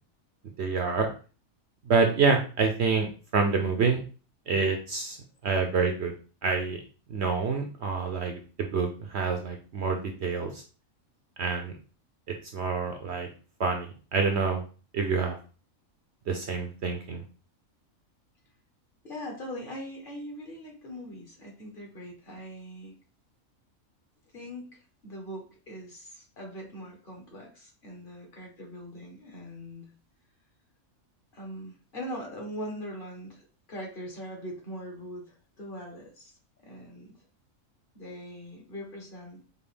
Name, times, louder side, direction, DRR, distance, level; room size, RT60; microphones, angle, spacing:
voice 1, 0.6-1.1 1.9-3.1 3.3-4.0 4.5-5.2 5.4-6.1 6.4-6.8 7.1-10.6 11.4-11.7 12.5-13.3 13.6-14.6 14.9-15.4 16.3-17.2, right 4 dB, 60° right, 4 dB, 0.8 m, -27 dB
voice 2, 19.0-22.9 24.3-29.9 31.3-36.3 36.6-37.2 37.9-39.4, equal, 40° left, 0 dB, 1.3 m, -41 dB
5.4 x 2.4 x 3.4 m, 0.37 s
omnidirectional pair, 1.5 m